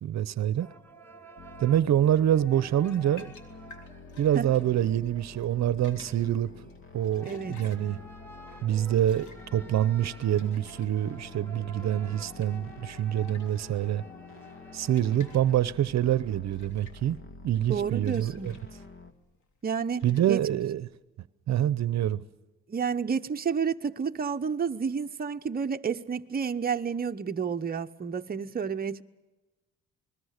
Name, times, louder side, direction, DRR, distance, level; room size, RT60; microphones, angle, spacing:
voice 1, 0.0-0.7 1.6-3.3 4.2-6.5 6.9-8.0 8.6-14.0 14.7-17.2 17.4-18.5 20.0-20.9 21.5-22.2, right 11 dB, 60° right, 0.8 m, -26 dB
sound 1, 0.6-15.7, equal, 5° left, 2.9 m, -51 dB
sound 2, 1.4-19.1, left 3 dB, 45° left, 2.3 m, -48 dB
sound 3, 2.8-20.9, left 4 dB, 75° left, 3.4 m, -57 dB
voice 2, 7.3-7.6 17.7-18.6 19.6-20.4 22.7-29.0, right 6 dB, 30° right, 1.0 m, -30 dB
28.5 x 21.0 x 6.6 m
cardioid pair, 90°, 30 cm